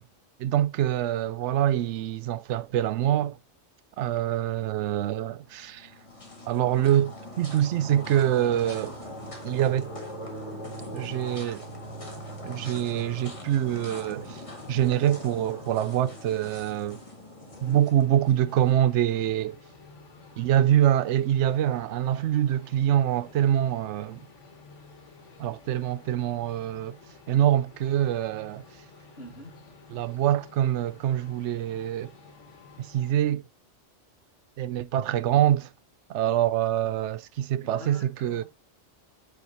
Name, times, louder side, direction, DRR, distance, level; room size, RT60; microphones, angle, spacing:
voice 1, 0.4-3.4 4.0-5.9 6.5-8.9 9.4-9.9 10.9-11.6 12.4-14.4 14.7-17.0 17.6-19.6 20.4-24.2 25.4-27.0 27.3-28.6 29.9-32.1 32.8-33.4 34.6-35.7 36.1-38.4, right 11 dB, 75° right, 0.9 m, -25 dB
sound 1, 5.5-18.8, equal, 25° left, 1.9 m, -41 dB
voice 2, 17.4-17.8 29.2-29.5 37.6-38.4, equal, 55° left, 2.1 m, -45 dB
sound 2, 17.6-33.1, left 3 dB, 75° left, 1.8 m, -51 dB
8.8 x 4.8 x 4.0 m
omnidirectional pair, 1.2 m